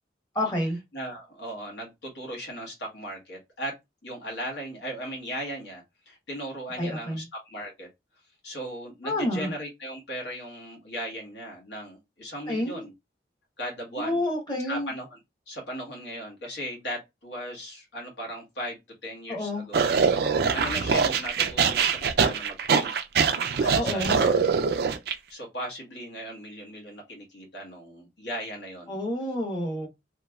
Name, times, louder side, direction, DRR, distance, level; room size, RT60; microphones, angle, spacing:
voice 1, 0.3-0.8 6.8-7.3 9.0-9.5 12.5-12.8 14.0-14.9 19.3-19.7 23.8-24.2 28.9-29.9, left 1 dB, 25° left, 1.1 m, -29 dB
voice 2, 0.9-3.7 4.0-7.9 8.4-12.9 13.6-14.2 14.7-15.2 15.5-18.8 19.0-19.8 20.5-24.8 25.3-28.9, equal, 80° left, 1.4 m, -37 dB
sound 1, 19.7-25.1, right 6 dB, 60° right, 0.4 m, -23 dB
3.2 x 2.9 x 2.3 m
head